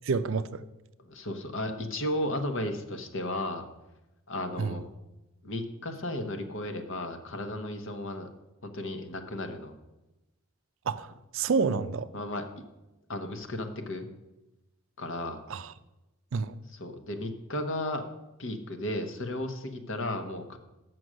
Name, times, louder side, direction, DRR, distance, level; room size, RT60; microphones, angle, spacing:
voice 1, 0.0-0.6 4.6-4.8 10.9-11.1 11.3-12.1 15.5-15.7 16.3-16.5, right 5 dB, 60° right, 13 dB, 0.4 m, -28 dB
voice 2, 1.0-3.6 4.3-4.9 5.4-8.3 8.6-9.8 12.1-12.5 13.1-14.1 15.0-15.4 16.7-18.0 18.4-20.6, left 1 dB, 55° left, 7 dB, 1.0 m, -34 dB
7.7 x 6.2 x 6.2 m, 0.99 s
head